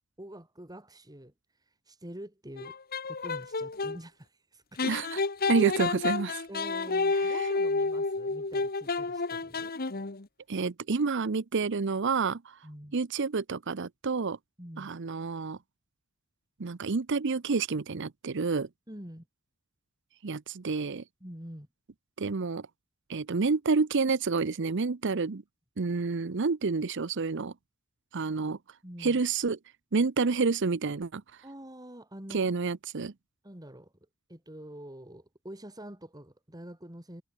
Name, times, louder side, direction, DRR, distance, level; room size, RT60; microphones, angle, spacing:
voice 1, 0.2-1.3 1.9-2.8 3.1-4.9 6.3-9.7 12.6-13.0 14.6-14.9 18.9-19.3 21.2-21.7 28.8-29.2 31.4-32.5 33.4-33.9 34.3-37.2, right 1 dB, 20° right, 5.2 m, -46 dB
sound 1, 2.6-4.0 4.8-10.2, left 3 dB, 45° left, 1.5 m, -30 dB
voice 2, 4.8-5.2 5.5-6.4 10.5-12.6 12.9-14.4 14.8-15.6 16.6-18.7 20.2-21.0 22.2-22.7 23.1-25.4 25.8-27.5 28.1-28.6 29.0-29.6 29.9-31.2 32.3-33.1, right 4 dB, 60° right, 0.7 m, -29 dB
head